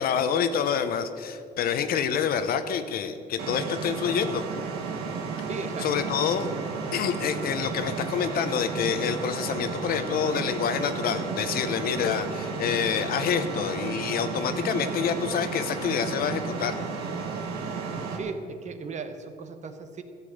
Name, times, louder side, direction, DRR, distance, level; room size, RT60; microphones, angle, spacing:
voice 1, 0.0-4.4 5.8-6.5 6.9-16.8, left 7 dB, 60° left, 10 dB, 0.9 m, -27 dB
sound 1, 3.4-18.2, right 5 dB, 75° right, 1.6 m, -33 dB
voice 2, 5.4-5.9 18.1-20.0, right 4 dB, 45° right, 8 dB, 1.0 m, -36 dB
13.5 x 7.5 x 6.5 m, 2.4 s
cardioid pair, 110°, 17 cm